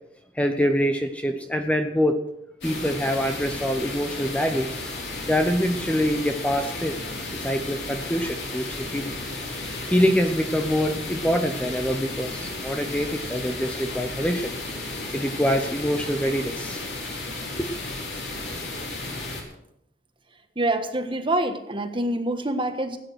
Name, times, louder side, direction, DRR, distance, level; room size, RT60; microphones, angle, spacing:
voice 1, 0.4-2.2 2.6-4.7 5.3-7.0 7.4-9.2 9.9-14.5 15.1-16.8 17.6-17.7, equal, 5° left, 6 dB, 0.8 m, -25 dB
sound 1, 2.6-19.4, left 2 dB, 65° left, 4.0 m, -33 dB
voice 2, 20.5-23.0, right 1 dB, 30° right, 7 dB, 1.5 m, -26 dB
17.0 x 9.5 x 6.3 m, 0.80 s
head